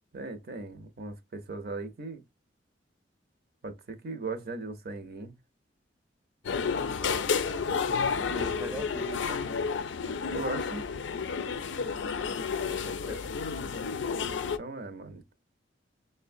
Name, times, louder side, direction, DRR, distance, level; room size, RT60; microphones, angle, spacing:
voice 1, 0.1-2.2 3.6-5.4 10.3-10.8 14.6-15.3, right 3 dB, 55° right, 0.7 m, -38 dB
sound 1, 6.4-14.6, left 5 dB, 80° left, 0.5 m, -31 dB
voice 2, 7.0-9.4 12.7-13.3, left 1 dB, 10° right, 0.6 m, -41 dB
6.1 x 2.2 x 2.5 m
head